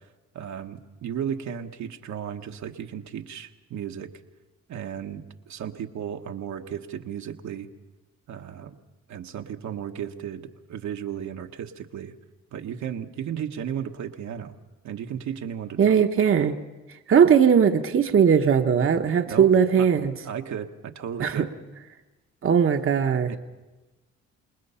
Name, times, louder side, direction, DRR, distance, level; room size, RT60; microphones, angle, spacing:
voice 1, 0.3-4.1 4.7-7.7 8.3-8.8 9.1-12.1 12.5-14.5 14.8-16.1 19.3-19.5 19.8-19.9 20.2-21.5 23.3-23.4, right 9 dB, 70° right, 4 dB, 1.3 m, -34 dB
voice 2, 15.8-16.6 17.1-20.1 21.2-21.5 22.4-23.4, right 7 dB, 45° right, 6 dB, 1.1 m, -19 dB
28.0 x 20.0 x 5.7 m, 1.2 s
cardioid pair, 90°, 30 cm